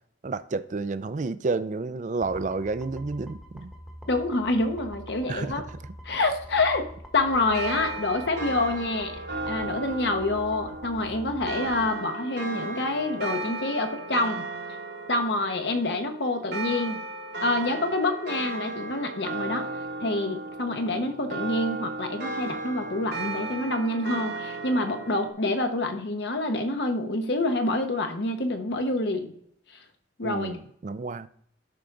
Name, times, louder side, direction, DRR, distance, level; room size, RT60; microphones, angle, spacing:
voice 1, 0.2-3.7 5.3-5.6 30.2-31.3, right 3 dB, 45° right, 0.4 m, -30 dB
sound 1, 2.2-11.9, equal, ahead, 1.0 m, -45 dB
voice 2, 4.1-5.6 6.0-6.8 7.1-9.1 9.5-14.4 15.1-17.0 17.4-19.6 20.0-29.3 30.2-30.6, left 2 dB, 75° left, 1.1 m, -27 dB
sound 2, 7.3-25.3, right 2 dB, 80° right, 2.0 m, -35 dB
11.5 x 4.7 x 3.8 m
head